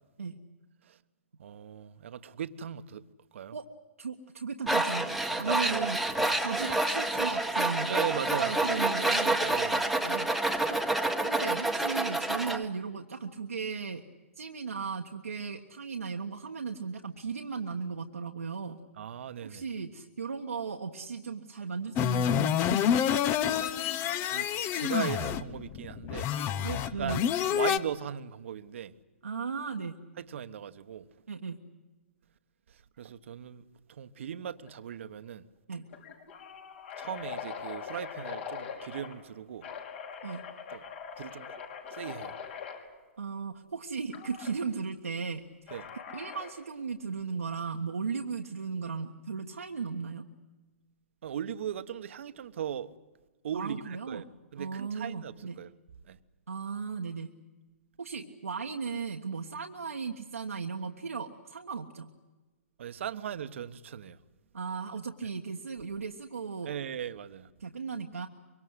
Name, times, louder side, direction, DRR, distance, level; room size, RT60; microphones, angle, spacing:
voice 1, 1.4-3.0 3.3-3.5 5.5-5.9 6.2-6.3 7.9-8.6 9.4-9.9 19.0-19.7 23.6-23.8 24.3-26.3 27.0-27.2 27.4-28.9 30.2-31.0 33.0-33.6 33.9-35.5 37.0-39.7 40.7-40.8 41.2-41.5 41.9-42.3 45.7-45.8 51.2-52.9 53.4-54.2 54.5-55.7 56.1-56.2 62.8-64.2 66.7-67.5, right 9 dB, 60° right, 1.2 m, -38 dB
voice 2, 4.0-6.0 6.4-8.0 8.4-9.4 10.0-10.3 10.7-10.8 11.2-14.0 14.4-18.8 19.4-23.1 26.6-27.3 29.2-29.9 31.3-31.6 35.7-35.9 40.2-40.4 43.2-45.8 46.1-50.3 53.5-54.2 54.6-55.6 56.5-57.3 58.0-62.1 64.5-66.7 67.6-68.3, right 5 dB, 85° right, 1.4 m, -36 dB
Tools, 4.7-12.6, right 2 dB, ahead, 1.5 m, -28 dB
sound 1, 22.0-27.8, left 9 dB, 30° left, 1.0 m, -28 dB
sound 2, 34.7-34.9 35.2-35.3 35.9-39.2 39.6-42.8 44.1-44.5 45.7-46.6, left 6 dB, 55° left, 5.7 m, -42 dB
25.0 x 23.5 x 8.1 m
hypercardioid pair, 125°, 7 cm